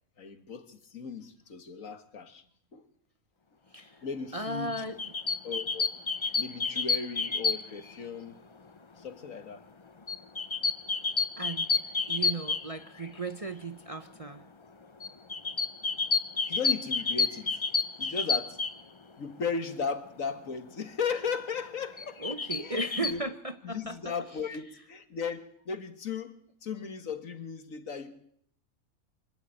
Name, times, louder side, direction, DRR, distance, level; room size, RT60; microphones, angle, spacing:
voice 1, 0.2-2.4 2.7-2.9 4.0-4.8 5.4-5.9 6.4-8.4 9.0-9.7 16.5-17.6 18.0-18.6 19.2-22.2 22.6-23.2 23.6-28.1, left 5 dB, 60° left, 1.9 m, -36 dB
voice 2, 4.3-5.1 11.4-11.8 12.1-14.4 22.2-24.4, right 2 dB, 25° right, 1.0 m, -36 dB
sound 1, 4.7-7.9 10.1-13.2 15.0-18.8 22.0-23.1, left 5 dB, 30° left, 0.6 m, -30 dB
25.0 x 11.5 x 9.1 m
omnidirectional pair, 1.6 m